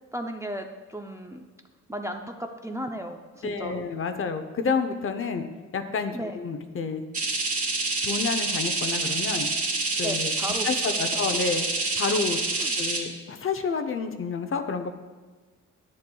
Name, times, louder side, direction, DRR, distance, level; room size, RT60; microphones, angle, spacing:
voice 1, 0.1-1.4 1.9-3.8 6.1-6.3 10.0-10.7 11.1-11.2 12.6-12.7, right 1 dB, 10° right, 3 dB, 0.5 m, -35 dB
voice 2, 3.4-5.4 5.7-7.0 8.0-9.5 10.0-10.3 10.6-11.6 12.0-12.4 12.8-14.9, left 5 dB, 40° left, 7 dB, 0.7 m, -29 dB
sound 1, 7.1-13.0, right 3 dB, 25° right, 2.7 m, -27 dB
10.5 x 9.3 x 2.3 m, 1.4 s
cardioid pair, 105°, 32 cm